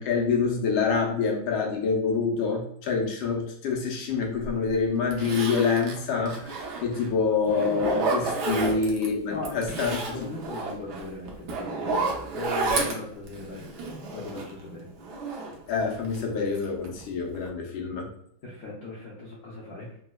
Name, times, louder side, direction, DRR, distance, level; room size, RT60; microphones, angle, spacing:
voice 1, 0.0-10.3 15.7-18.1, left 5 dB, 85° left, -1 dB, 1.5 m, -26 dB
Zipper (clothing), 4.4-4.5 5.1-7.1 7.5-9.1 9.4-14.6 15.0-16.2 16.5-17.0 17.3-17.5, right 3 dB, 70° right, 1.0 m, -31 dB
voice 2, 8.5-8.8 9.3-9.5 10.1-13.7 14.1-14.9 18.4-19.9, left 2 dB, 70° left, -5 dB, 0.8 m, -38 dB
4.1 x 2.1 x 2.2 m, 0.69 s
omnidirectional pair, 2.2 m